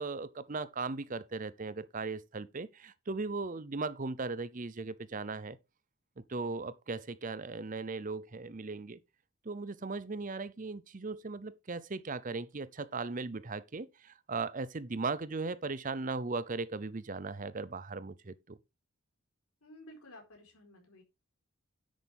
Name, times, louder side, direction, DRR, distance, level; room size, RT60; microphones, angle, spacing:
voice 1, 0.0-5.6 6.3-9.0 9.5-18.6, right 3 dB, 35° right, 0.6 m, -38 dB
voice 2, 19.6-21.0, left 1 dB, 80° left, 4.2 m, -53 dB
10.0 x 8.4 x 3.5 m
head